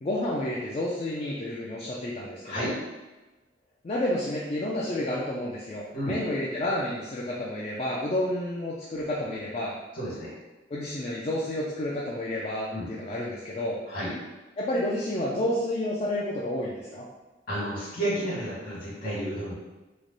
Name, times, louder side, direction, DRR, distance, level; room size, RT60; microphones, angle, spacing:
voice 1, 0.0-2.7 3.8-9.7 10.7-13.8 14.6-17.0, left 1 dB, 35° left, -4 dB, 0.4 m, -30 dB
voice 2, 2.4-2.8 5.9-6.2 9.9-10.3 12.7-12.9 13.9-14.1 17.5-19.5, right 1 dB, 50° left, -6 dB, 1.4 m, -31 dB
3.1 x 2.1 x 3.9 m, 1.1 s
head